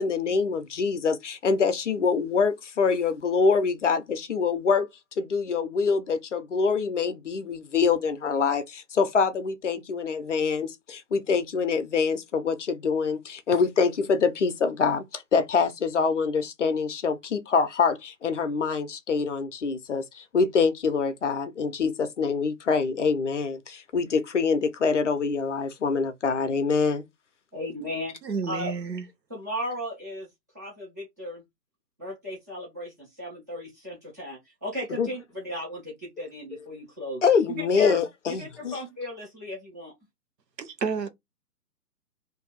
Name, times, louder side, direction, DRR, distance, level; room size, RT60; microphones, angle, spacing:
voice 1, 0.0-4.9 5.2-27.0 35.0-35.1 37.2-38.8, left 5 dB, 50° left, 0.6 m, -25 dB
voice 2, 27.5-28.2 28.5-28.7 29.3-30.3 30.5-31.4 32.0-37.2 37.5-38.0 38.3-39.9, left 1 dB, 10° right, 0.5 m, -35 dB
voice 3, 28.2-29.0 40.6-41.1, right 5 dB, 75° right, 0.9 m, -30 dB
2.6 x 2.3 x 3.8 m
figure-of-eight pair, 130°, 49 cm